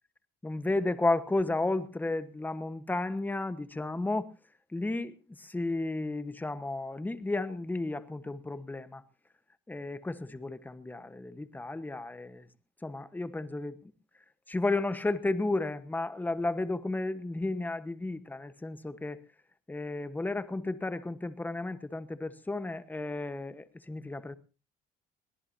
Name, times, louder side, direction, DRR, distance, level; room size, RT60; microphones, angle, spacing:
voice 1, 0.4-4.3 4.7-9.0 9.7-12.5 12.8-13.8 14.5-19.2 19.7-24.3, left 2 dB, 10° left, 1.2 m, -33 dB
22.5 x 17.5 x 2.8 m
cardioid pair, 110°, 17 cm